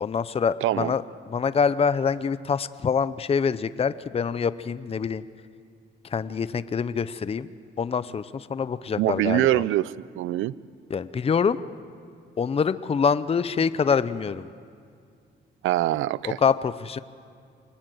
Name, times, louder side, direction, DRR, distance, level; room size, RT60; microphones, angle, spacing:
voice 1, 0.0-5.2 6.1-7.5 7.8-9.6 10.9-11.6 12.4-14.5 16.4-17.0, left 6 dB, 30° left, 14 dB, 0.6 m, -25 dB
voice 2, 0.6-0.9 9.0-10.5 15.6-16.4, right 15 dB, 85° right, 20 dB, 0.5 m, -24 dB
25.0 x 19.0 x 7.9 m, 2.3 s
cardioid pair, 90°, 20 cm